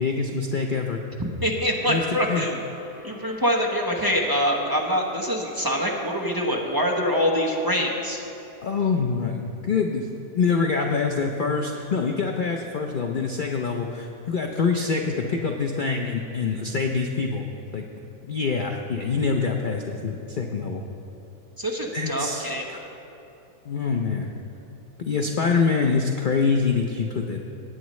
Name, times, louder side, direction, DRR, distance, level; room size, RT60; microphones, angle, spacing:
voice 1, 0.0-1.0 1.9-2.0 2.3-2.5 8.6-10.1 10.3-17.4 17.7-17.8 18.3-20.8 21.9-22.8 23.7-24.3 25.0-27.4, left 5 dB, 70° left, 2 dB, 0.4 m, -25 dB
voice 2, 1.2-2.6 3.0-8.2 21.6-22.7, equal, 15° right, -2 dB, 0.8 m, -25 dB
sound 1, 1.7-8.1, right 1 dB, 15° left, 3.0 m, -46 dB
19.0 x 8.8 x 3.1 m, 3.0 s
omnidirectional pair, 1.7 m